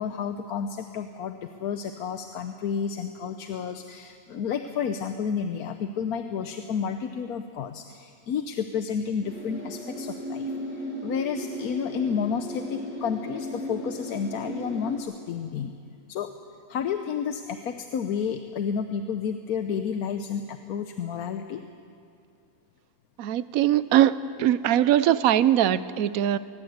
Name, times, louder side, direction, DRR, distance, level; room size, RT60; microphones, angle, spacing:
voice 1, 0.0-10.5 11.0-15.7 16.1-16.3 16.7-21.6, left 7 dB, 85° left, 8 dB, 1.3 m, -31 dB
sound 1, 9.2-15.0, equal, 5° right, 4.8 m, -35 dB
voice 2, 23.2-26.4, right 11 dB, 75° right, 16 dB, 1.1 m, -21 dB
21.5 x 19.5 x 8.0 m, 2.5 s
omnidirectional pair, 1.5 m